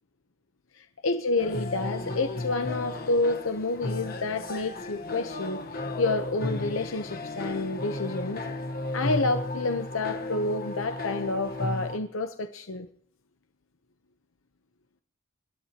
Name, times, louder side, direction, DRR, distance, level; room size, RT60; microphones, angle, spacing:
voice 1, 0.7-8.4 8.9-12.9, left 2 dB, 75° left, 0.9 m, -29 dB
sound 1, 1.4-12.0, left 2 dB, 50° left, 1.2 m, -34 dB
27.0 x 12.0 x 2.9 m
head